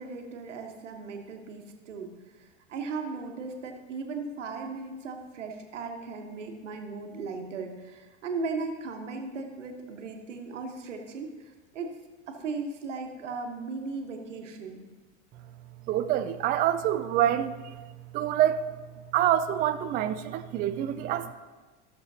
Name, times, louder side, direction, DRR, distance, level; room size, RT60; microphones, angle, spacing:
voice 1, 0.0-12.0 12.3-14.8, right 4 dB, 85° right, 4 dB, 1.3 m, -37 dB
voice 2, 15.9-17.8 18.1-18.6 19.1-21.3, right 11 dB, 25° right, 10 dB, 0.4 m, -26 dB
15.0 x 6.8 x 2.8 m, 1.3 s
hypercardioid pair, 100°, 36 cm